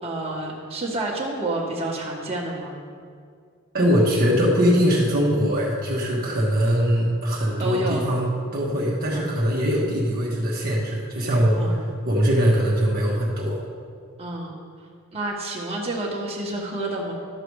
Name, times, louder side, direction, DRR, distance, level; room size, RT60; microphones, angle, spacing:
voice 1, 0.0-2.8 7.6-8.1 9.1-9.2 11.5-11.8 14.2-14.6 15.1-17.1, right 2 dB, 30° right, -3 dB, 1.5 m, -29 dB
voice 2, 3.7-11.8 12.1-13.6, equal, 45° right, -4 dB, 1.3 m, -21 dB
12.0 x 6.9 x 4.7 m, 2.1 s
head